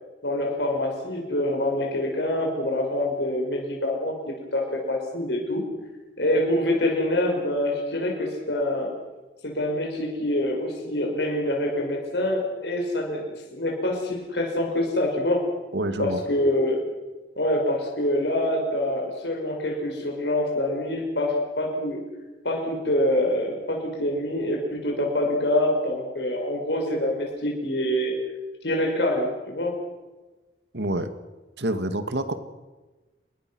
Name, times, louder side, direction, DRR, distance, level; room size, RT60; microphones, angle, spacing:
voice 1, 0.2-4.2 4.5-5.6 6.2-8.9 9.4-15.4 16.0-16.8 17.4-22.0 22.4-28.2 28.6-29.8, left 1 dB, 75° left, 1 dB, 5.5 m, -25 dB
voice 2, 15.7-16.2 30.7-31.1 31.6-32.3, right 1 dB, 75° right, 10 dB, 2.0 m, -27 dB
28.0 x 22.0 x 6.3 m, 1.2 s
head